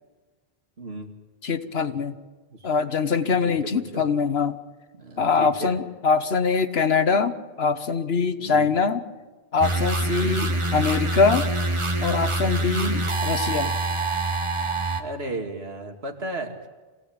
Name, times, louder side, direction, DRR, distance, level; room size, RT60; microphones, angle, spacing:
voice 1, 0.8-1.1 2.5-2.6 3.2-4.1 5.0-5.7 8.4-8.7 10.1-10.4 12.5-12.7 15.0-16.7, right 2 dB, 80° right, 4 dB, 2.5 m, -35 dB
voice 2, 1.4-2.1 2.6-4.6 5.2-9.0 9.5-11.5 12.0-13.8, left 5 dB, 75° left, 10 dB, 1.5 m, -23 dB
sound 1, 9.6-15.0, right 2 dB, 30° right, 1.2 m, -25 dB
26.0 x 16.5 x 8.8 m, 1.3 s
omnidirectional pair, 1.0 m